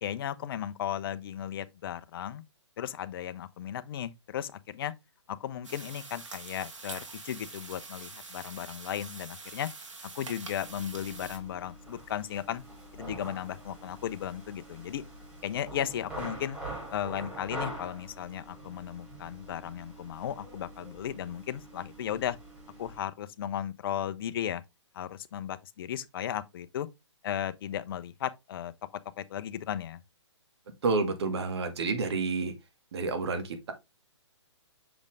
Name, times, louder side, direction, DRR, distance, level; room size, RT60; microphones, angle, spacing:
voice 1, 0.0-2.4 2.8-4.9 5.3-9.7 10.1-12.6 12.9-15.0 15.4-16.6 16.9-22.4 22.8-24.6 24.9-26.9 27.2-28.7 29.2-30.0, left 10 dB, 50° left, 0.8 m, -35 dB
sound 1, 5.6-11.4, right 3 dB, 90° right, 2.2 m, -45 dB
sound 2, 10.6-23.0, right 1 dB, 10° right, 3.6 m, -45 dB
voice 2, 30.8-32.5 32.9-33.7, right 3 dB, 60° right, 2.1 m, -29 dB
6.5 x 5.1 x 3.4 m
hypercardioid pair, 145°, 16 cm